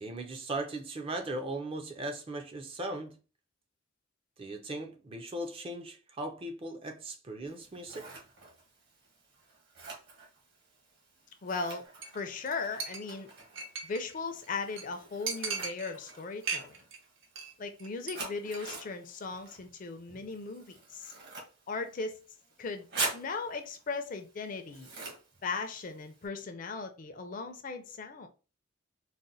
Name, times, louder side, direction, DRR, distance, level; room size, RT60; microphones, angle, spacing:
voice 1, 0.0-3.2 4.4-8.1, right 2 dB, 30° right, 0.4 m, -38 dB
Scissors, 7.5-26.3, right 3 dB, 55° right, 1.1 m, -45 dB
voice 2, 11.4-11.9 12.1-13.3 13.8-16.8 17.6-21.1 21.7-22.2 22.6-22.9 23.1-24.9 25.4-28.3, left 4 dB, 40° left, 0.4 m, -37 dB
Chink clink, 12.0-12.2 12.5-12.6 12.8-14.1 14.4-14.5 14.8-14.9 15.3-16.1 16.4-17.0 17.2-17.5 17.8-18.1 18.4-18.6, right 5 dB, 85° right, 0.8 m, -37 dB
4.1 x 2.1 x 2.6 m
head